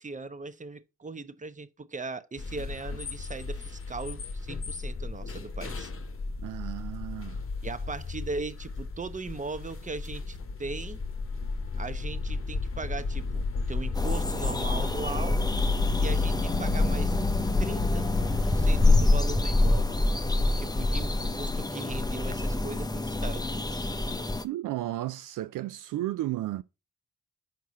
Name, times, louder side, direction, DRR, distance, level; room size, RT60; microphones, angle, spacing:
voice 1, 0.0-5.9 7.6-11.0 11.8-15.4 16.0-17.2 17.6-18.1 18.4-20.0 20.5-23.9, right 3 dB, 25° right, 0.9 m, -39 dB
sound 1, 2.4-19.0, left 3 dB, 40° left, 1.0 m, -32 dB
voice 2, 6.4-7.4 24.4-26.6, right 15 dB, 70° right, 0.5 m, -33 dB
sound 2, 14.0-24.4, left 2 dB, 10° left, 0.7 m, -27 dB
5.9 x 4.6 x 5.2 m
supercardioid pair, 50°, 32 cm